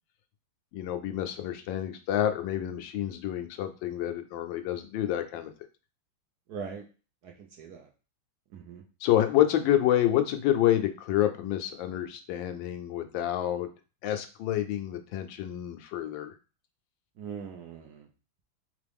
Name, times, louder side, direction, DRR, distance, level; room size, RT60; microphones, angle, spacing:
voice 1, 0.7-5.5 9.0-13.7 14.0-16.4, left 12 dB, 75° left, 7 dB, 1.3 m, -28 dB
voice 2, 6.5-6.9 7.2-7.9 8.5-8.8 17.2-18.1, right 6 dB, 65° right, 2 dB, 1.0 m, -41 dB
3.8 x 3.7 x 3.4 m, 0.34 s
omnidirectional pair, 2.2 m